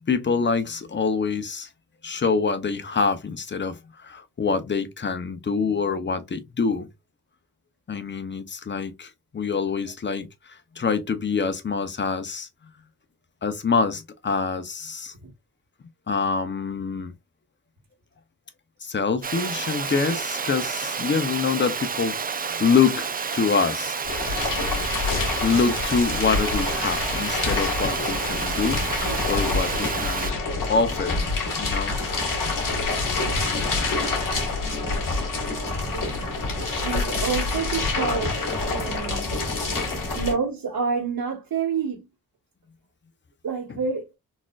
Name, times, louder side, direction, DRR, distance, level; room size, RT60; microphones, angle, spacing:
voice 1, 0.1-1.7 2.0-6.9 7.9-12.5 13.4-15.1 16.1-17.1 18.8-22.2 22.6-24.0 25.4-29.0 29.3-30.4 30.7-31.2 31.6-31.9 43.7-43.8, left 5 dB, 30° left, 0.6 m, -25 dB
Water, 19.2-30.3, right 6 dB, 25° right, 0.3 m, -30 dB
sound 1, 24.0-40.3, left 3 dB, 65° left, 1.9 m, -27 dB
voice 2, 34.6-36.3 36.8-39.4 40.1-42.1 43.4-44.1, right 5 dB, 75° right, 1.5 m, -29 dB
4.0 x 2.5 x 2.3 m
wide cardioid pair, 110°, 35 cm